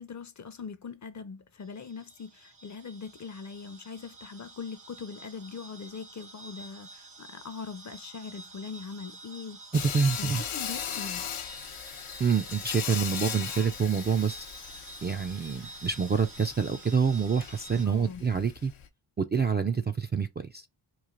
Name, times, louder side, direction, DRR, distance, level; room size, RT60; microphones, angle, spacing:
voice 1, 0.0-9.6 10.2-11.3 17.9-18.2, left 5 dB, 40° left, 0.5 m, -41 dB
sound 1, 1.6-17.9, right 2 dB, 90° right, 1.3 m, -48 dB
Sawing, 9.7-18.9, left 9 dB, 75° left, 0.6 m, -39 dB
voice 2, 9.7-10.4 12.2-14.5 15.0-18.7 19.2-20.3 20.5-20.7, right 6 dB, 25° right, 0.3 m, -27 dB
3.1 x 2.4 x 3.7 m
cardioid pair, 50°, 48 cm